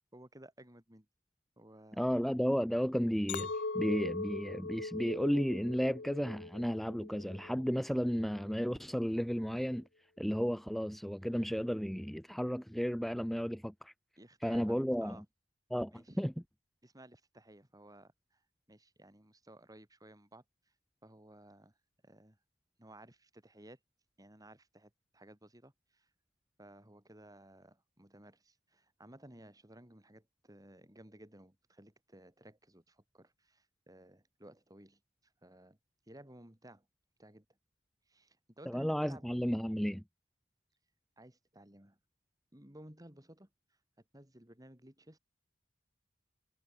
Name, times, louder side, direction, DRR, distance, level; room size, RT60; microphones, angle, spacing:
voice 1, 0.1-1.1 1.6-2.2 14.2-15.2 15.9-16.2 16.8-18.4 18.7-20.4 21.0-21.7 22.0-22.4 22.8-23.8 24.2-26.1 26.6-35.0 35.4-35.8 36.1-36.8 37.2-37.4 38.1-39.3 41.2-42.0 42.5-43.5 44.1-45.2, right 1 dB, 20° right, 4.8 m, -56 dB
voice 2, 2.0-3.5 3.7-9.8 10.2-13.9 14.4-15.2 15.7-16.3 38.7-40.0, equal, ahead, 0.4 m, -33 dB
Chink clink, 3.3-7.6 8.1-8.5, left 3 dB, 65° left, 1.3 m, -40 dB
head